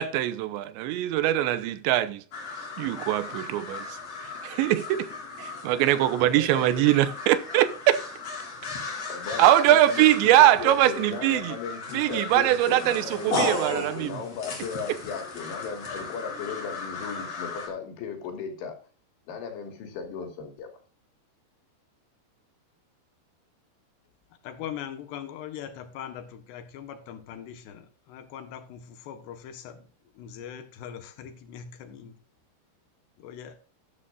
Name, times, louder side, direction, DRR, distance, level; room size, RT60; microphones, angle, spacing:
voice 1, 0.0-2.2 2.8-3.8 4.4-5.1 5.4-8.0 9.4-11.6 11.9-14.2 14.9-15.0, right 13 dB, 90° right, 3.2 m, -22 dB
sound 1, 2.3-17.7, left 3 dB, 40° left, 3.8 m, -36 dB
voice 2, 5.6-6.7 9.1-10.1 10.4-18.7 19.3-20.7, left 6 dB, 90° left, 5.0 m, -37 dB
voice 3, 24.4-29.8 30.2-32.1 33.2-33.6, left 9 dB, 75° left, 3.4 m, -41 dB
13.0 x 12.5 x 2.6 m
omnidirectional pair, 5.1 m